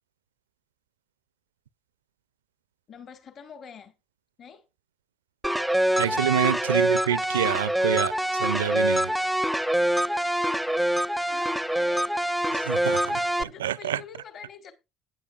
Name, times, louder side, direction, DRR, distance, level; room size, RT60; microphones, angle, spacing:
voice 1, 2.9-3.9 4.4-4.6 6.0-6.2 7.3-7.6 11.3-14.7, left 6 dB, 45° left, 1.7 m, -46 dB
sound 1, 5.4-13.4, right 1 dB, ahead, 0.5 m, -25 dB
voice 2, 6.0-9.1 12.7-13.0 13.4-14.0, right 10 dB, 80° right, 0.4 m, -27 dB
13.5 x 9.7 x 2.4 m
figure-of-eight pair, 60°, 0 cm